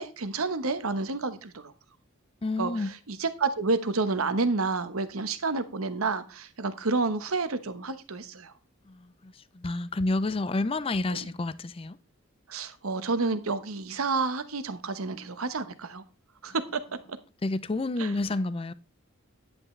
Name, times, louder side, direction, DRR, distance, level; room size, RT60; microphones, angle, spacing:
voice 1, 0.0-1.7 2.6-8.5 11.1-11.3 12.5-16.0 16.4-16.8 17.1-17.2 18.0-18.1, right 3 dB, 85° right, 1.1 m, -30 dB
voice 2, 2.4-2.9 8.9-12.0 17.4-18.7, left 2 dB, 25° left, 0.4 m, -29 dB
9.9 x 8.9 x 3.2 m
head